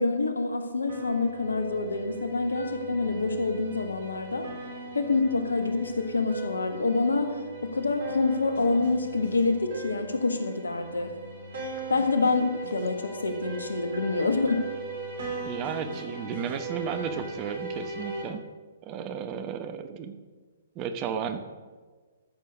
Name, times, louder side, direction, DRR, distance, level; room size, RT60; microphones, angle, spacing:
voice 1, 0.0-4.5 4.9-11.1 11.9-14.6, left 3 dB, 80° left, 8 dB, 1.3 m, -27 dB
sound 1, 0.9-18.2, right 3 dB, 55° right, 3.2 m, -39 dB
voice 2, 15.4-18.4 18.8-20.1 20.7-21.4, right 7 dB, 30° right, 9 dB, 1.0 m, -34 dB
13.5 x 6.6 x 6.7 m, 1.4 s
figure-of-eight pair, 120°, 0 cm